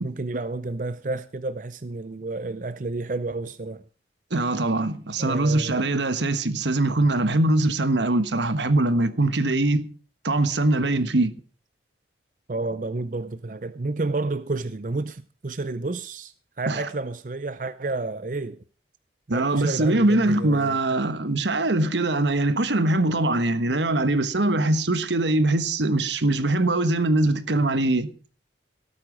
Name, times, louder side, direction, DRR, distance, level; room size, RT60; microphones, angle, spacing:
voice 1, 0.0-3.8 5.2-5.9 12.5-18.6 19.3-20.8, right 3 dB, 45° right, 0.6 m, -30 dB
voice 2, 4.3-9.9 10.2-11.3 16.7-16.9 19.3-28.1, right 2 dB, 85° right, 1.3 m, -22 dB
17.5 x 8.9 x 6.2 m
head